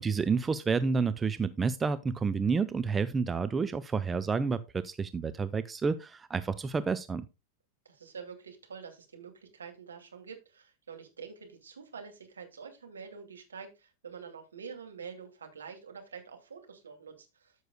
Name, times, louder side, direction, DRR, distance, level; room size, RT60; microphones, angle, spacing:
voice 1, 0.0-7.3, right 5 dB, 15° right, 0.5 m, -29 dB
voice 2, 7.8-17.5, right 6 dB, 70° right, 2.3 m, -46 dB
14.0 x 6.4 x 2.2 m
figure-of-eight pair, 90°, 0 cm